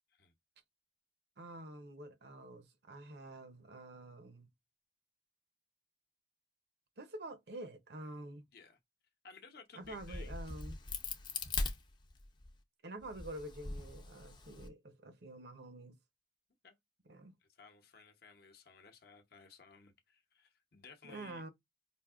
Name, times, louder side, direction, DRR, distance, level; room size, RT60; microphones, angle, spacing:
voice 1, 1.4-4.5 7.0-8.4 9.8-10.8 12.8-16.0 17.1-17.3 21.0-21.5, right 1 dB, 55° right, 0.7 m, -48 dB
voice 2, 9.2-10.6 16.6-16.8 17.5-21.4, left 5 dB, 55° left, 0.8 m, -57 dB
Crack, 9.8-12.5 13.0-14.7, left 3 dB, 25° left, 0.6 m, -41 dB
5.1 x 2.6 x 2.4 m
head